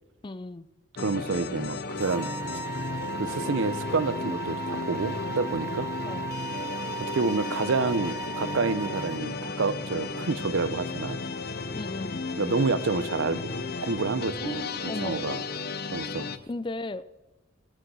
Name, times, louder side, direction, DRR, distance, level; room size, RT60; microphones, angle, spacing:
voice 1, 0.2-0.7 6.1-6.3 11.7-12.3 14.4-15.2 16.4-17.0, left 2 dB, 25° left, 15 dB, 0.4 m, -36 dB
sound 1, 1.0-16.4, left 3 dB, 50° left, 0.8 m, -34 dB
voice 2, 1.0-2.3 3.2-5.9 7.1-11.2 12.4-15.4 15.9-16.3, right 3 dB, 85° right, 15 dB, 0.7 m, -28 dB
sound 2, 2.0-9.2, right 5 dB, 15° right, 0.7 m, -37 dB
18.0 x 7.7 x 6.3 m, 1.1 s
head